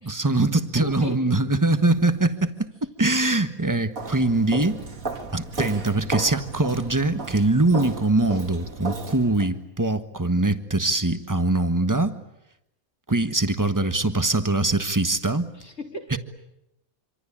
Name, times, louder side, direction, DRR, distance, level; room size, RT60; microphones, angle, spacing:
voice 1, 0.0-4.8 5.3-12.2 13.1-15.5 16.1-16.2, right 2 dB, 15° right, 1.2 m, -23 dB
voice 2, 0.7-1.2 4.8-4.9 15.5-16.2, equal, 45° left, 4.0 m, -37 dB
Walk footsteps, 3.9-9.5, right 3 dB, 65° right, 2.6 m, -34 dB
26.5 x 25.5 x 8.7 m
omnidirectional pair, 1.6 m